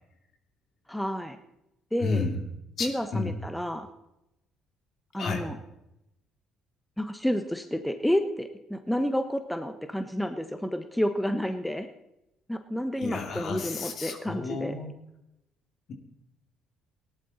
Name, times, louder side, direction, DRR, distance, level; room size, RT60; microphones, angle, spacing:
voice 1, 0.9-1.4 1.9-2.3 2.8-3.9 5.1-5.6 7.0-11.9 12.5-14.7, equal, 5° left, 8 dB, 1.2 m, -30 dB
voice 2, 2.0-2.4 2.8-3.3 5.1-5.5 13.0-14.9, left 4 dB, 55° left, 3 dB, 2.9 m, -31 dB
18.0 x 11.0 x 4.2 m, 0.88 s
hypercardioid pair, 55°, 0 cm